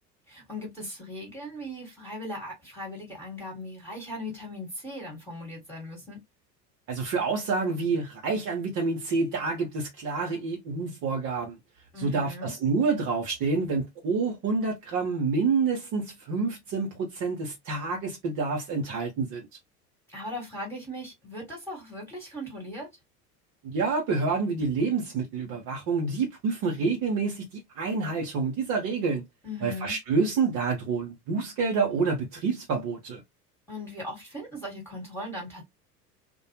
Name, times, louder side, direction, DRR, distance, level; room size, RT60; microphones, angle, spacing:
voice 1, 0.3-6.2 11.9-12.5 20.1-22.9 29.4-29.9 33.7-35.6, left 1 dB, 5° left, 1.4 m, -38 dB
voice 2, 6.9-11.6 12.0-19.5 23.6-29.2 29.6-33.2, right 4 dB, 45° right, 1.0 m, -28 dB
2.6 x 2.2 x 2.9 m
figure-of-eight pair, 80°, 48 cm